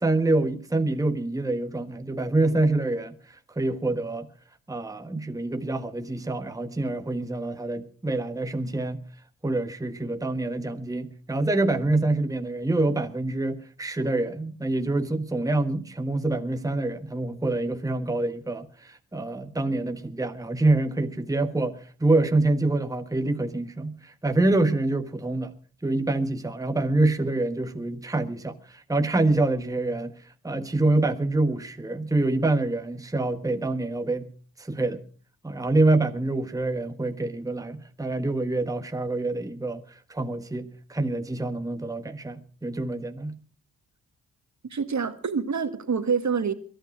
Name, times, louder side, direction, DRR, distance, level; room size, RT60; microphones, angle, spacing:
voice 1, 0.0-3.2 3.5-4.3 4.7-9.0 9.4-25.5 25.8-30.1 30.4-34.3 34.6-35.0 35.4-43.4, right 2 dB, 10° right, 1.3 m, -26 dB
voice 2, 44.7-46.5, right 6 dB, 45° right, 1.8 m, -26 dB
22.0 x 9.2 x 6.1 m
supercardioid pair, 50°, 40 cm